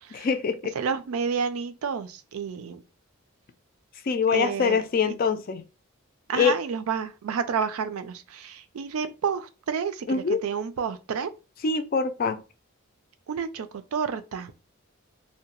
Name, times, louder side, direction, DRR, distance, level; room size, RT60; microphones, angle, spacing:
voice 1, 0.1-0.7 4.1-5.6 6.3-6.6 10.1-10.4 11.6-12.4, left 5 dB, 40° left, 0.3 m, -24 dB
voice 2, 0.7-2.8 4.3-4.8 6.3-11.3 13.3-14.5, right 6 dB, 90° right, 0.4 m, -30 dB
2.7 x 2.1 x 2.9 m
head